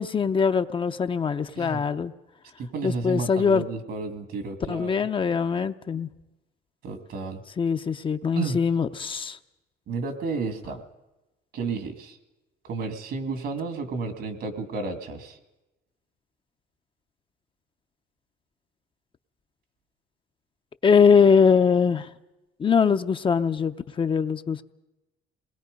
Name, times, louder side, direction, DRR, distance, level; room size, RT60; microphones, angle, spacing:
voice 1, 0.0-2.1 2.8-3.6 4.7-6.1 7.6-9.4 20.8-22.1 22.6-24.6, left 6 dB, 30° left, 9 dB, 0.7 m, -22 dB
voice 2, 1.6-1.9 2.6-5.0 6.8-7.4 8.3-8.6 9.9-10.8 11.5-12.2 12.6-15.4, right 4 dB, 70° right, 8 dB, 2.3 m, -32 dB
27.0 x 20.0 x 5.3 m, 1.0 s
cardioid pair, 110°, 17 cm